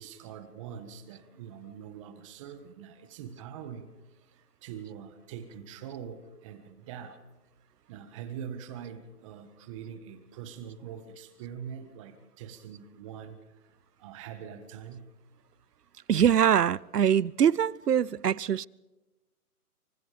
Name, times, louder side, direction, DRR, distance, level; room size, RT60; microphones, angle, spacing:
voice 1, 0.0-3.9 4.6-7.2 7.9-13.4 14.0-15.0, right 8 dB, 20° right, 1.6 m, -43 dB
voice 2, 16.1-18.7, right 9 dB, 80° right, 0.9 m, -23 dB
27.5 x 25.0 x 5.2 m
hypercardioid pair, 155°, 47 cm